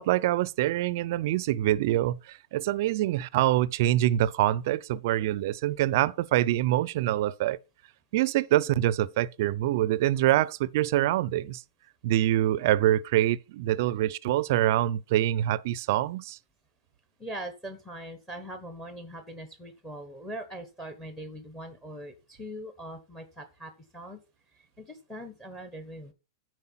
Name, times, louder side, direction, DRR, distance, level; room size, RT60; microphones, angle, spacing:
voice 1, 0.0-7.6 8.1-11.6 12.0-16.4, right 14 dB, 45° right, 0.5 m, -25 dB
voice 2, 17.2-24.2 24.5-26.1, right 1 dB, 10° left, 1.1 m, -41 dB
9.8 x 4.6 x 5.7 m
supercardioid pair, 170°, 2 cm